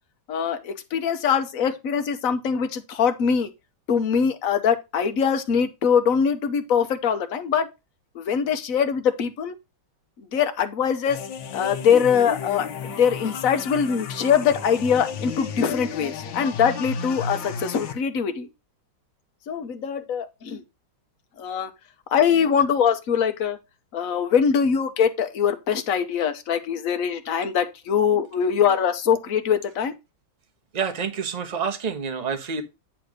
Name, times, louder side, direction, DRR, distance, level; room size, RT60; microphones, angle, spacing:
voice 1, 0.3-3.5 3.9-7.7 8.1-9.5 10.3-11.2 11.5-18.5 19.5-20.6 21.4-21.7 22.1-23.6 23.9-29.9, left 7 dB, 55° left, 1.2 m, -22 dB
sound 1, 11.1-17.9, left 6 dB, 75° left, 1.6 m, -33 dB
voice 2, 30.7-32.6, right 6 dB, 25° right, 0.9 m, -28 dB
8.9 x 3.5 x 6.3 m
omnidirectional pair, 2.1 m